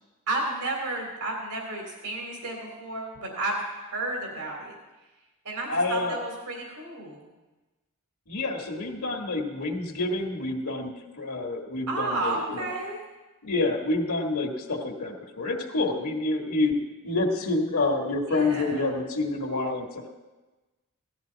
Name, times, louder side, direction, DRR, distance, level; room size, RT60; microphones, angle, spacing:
voice 1, 0.3-4.7 5.4-7.3 11.9-13.0 18.3-18.9, right 2 dB, 90° right, 0 dB, 3.1 m, -32 dB
voice 2, 5.7-6.2 8.3-12.7 13.4-16.8 17.0-20.1, left 2 dB, 75° left, 0 dB, 1.8 m, -28 dB
17.5 x 13.5 x 4.0 m, 1.2 s
head